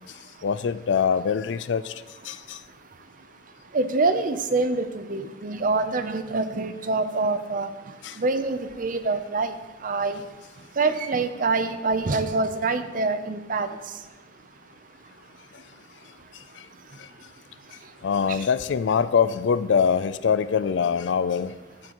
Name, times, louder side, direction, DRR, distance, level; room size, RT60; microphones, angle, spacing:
voice 1, 0.4-1.9 2.3-2.6 8.0-8.1 18.0-21.5, left 6 dB, 75° left, 0.4 m, -23 dB
voice 2, 3.7-7.7 8.2-9.6 9.8-10.2 10.8-13.7 18.3-18.4, right 3 dB, 45° right, 0.6 m, -25 dB
14.5 x 7.7 x 3.0 m
head